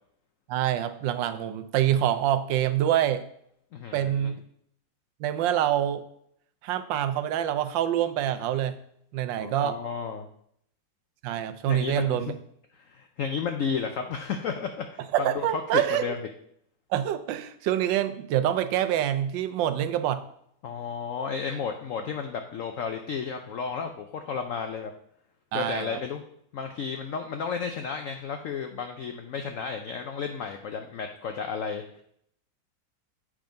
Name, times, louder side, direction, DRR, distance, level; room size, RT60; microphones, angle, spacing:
voice 1, 0.5-3.2 3.9-4.4 5.2-6.0 6.6-8.8 9.1-9.8 11.2-12.3 15.1-16.1 16.9-20.2 25.5-26.0, right 11 dB, 80° right, 10 dB, 1.3 m, -26 dB
voice 2, 3.7-4.3 9.4-10.3 11.7-12.2 12.8-16.2 20.6-24.9 25.5-26.2 26.5-32.0, left 6 dB, 90° left, 5 dB, 0.7 m, -33 dB
7.6 x 3.6 x 5.1 m, 0.70 s
omnidirectional pair, 2.0 m